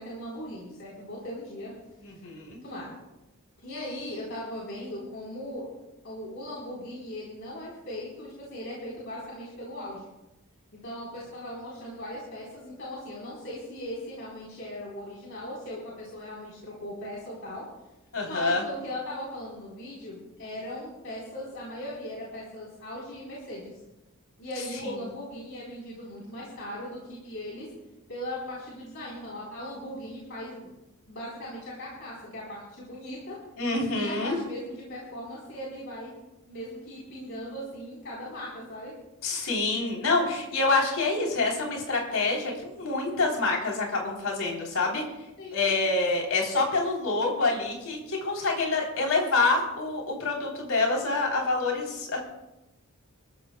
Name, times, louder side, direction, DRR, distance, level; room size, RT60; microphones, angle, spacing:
voice 1, 0.0-1.7 2.6-2.9 3.6-5.6 6.0-10.1 10.8-17.6 18.2-23.8 24.4-27.7 28.1-30.7 31.1-33.4 33.9-36.1 36.5-38.9 45.4-45.9, left 1 dB, 60° left, -6 dB, 4.0 m, -38 dB
voice 2, 2.0-2.6 18.1-18.6 24.8-24.9 33.6-34.4 39.2-45.0 45.5-52.2, left 3 dB, 75° left, 0 dB, 3.5 m, -27 dB
27.0 x 13.5 x 2.3 m, 0.99 s
head